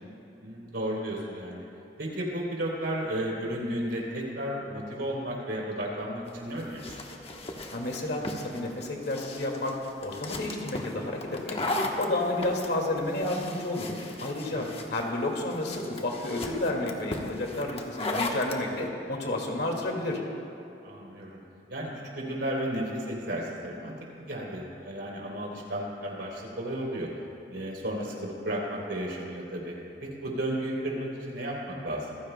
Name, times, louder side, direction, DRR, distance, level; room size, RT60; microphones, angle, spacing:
voice 1, 0.4-1.7 2.0-7.0 14.5-14.7 20.8-21.4 21.7-27.1 27.5-29.7 30.0-32.2, right 1 dB, 80° right, -3 dB, 3.6 m, -33 dB
sound 1, 6.3-18.6, left 2 dB, 35° left, 1.1 m, -36 dB
voice 2, 7.7-11.6 12.0-13.9 14.2-20.2, left 2 dB, 70° left, 0 dB, 2.2 m, -31 dB
26.5 x 15.5 x 2.3 m, 2.9 s
head